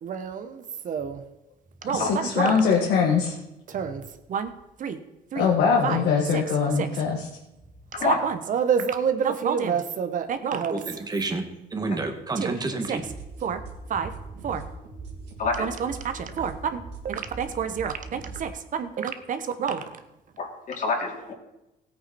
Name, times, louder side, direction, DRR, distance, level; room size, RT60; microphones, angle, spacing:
voice 1, 0.0-1.2 1.8-2.1 2.3-2.6 3.7-4.0 4.3-4.5 4.8-5.0 5.3-5.5 5.8-6.0 6.3-6.4 6.8-6.9 8.0-10.8 12.4-12.6 12.9-13.0 13.4-13.6 13.9-14.1 14.4-14.6 15.6-19.8, right 7 dB, 50° right, 9 dB, 1.3 m, -28 dB
voice 2, 1.8-3.3 5.4-7.3, left 6 dB, 85° left, -1 dB, 2.1 m, -22 dB
voice 3, 10.7-11.4 11.7-13.0, right 3 dB, 25° right, 5 dB, 1.9 m, -29 dB
sound 1, 13.0-18.5, right 3 dB, 80° right, 3.1 m, -41 dB
voice 4, 20.4-21.3, left 3 dB, 50° left, 0 dB, 3.2 m, -26 dB
16.5 x 8.8 x 4.4 m, 0.94 s
cardioid pair, 110°, 17 cm